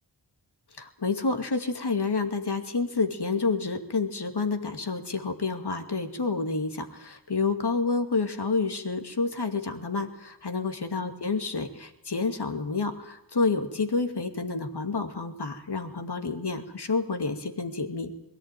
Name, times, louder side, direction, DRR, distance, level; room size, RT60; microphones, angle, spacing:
voice 1, 0.8-18.1, left 4 dB, 65° left, 6 dB, 2.4 m, -29 dB
21.5 x 15.0 x 9.1 m, 0.93 s
wide cardioid pair, 55°, 42 cm